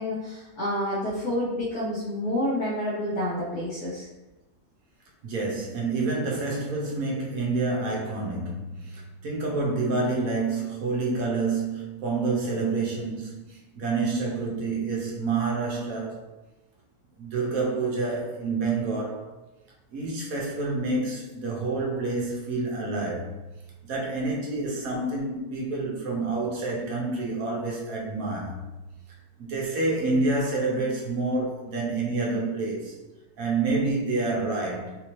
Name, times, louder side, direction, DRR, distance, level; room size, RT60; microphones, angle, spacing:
voice 1, 0.0-4.1, left 1 dB, 80° left, 1.6 m, -29 dB
voice 2, 5.2-16.3 17.2-19.3 19.9-23.4 23.8-28.6 29.4-33.0 33.4-35.0, right 3 dB, 65° right, 1.2 m, -28 dB
4.0 x 2.7 x 3.0 m
omnidirectional pair, 1.6 m